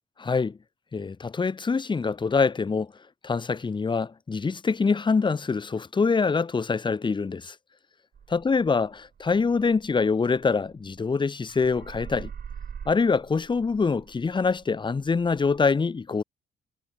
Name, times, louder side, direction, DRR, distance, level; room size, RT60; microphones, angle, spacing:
voice 1, 0.2-0.6 0.9-2.9 3.2-7.5 8.3-8.9 9.2-12.3 12.9-16.2, left 4 dB, 25° left, 0.8 m, -24 dB
sound 1, 8.1-11.2 11.5-15.7, right 7 dB, 50° right, 6.1 m, -44 dB
cardioid pair, 90°, 20 cm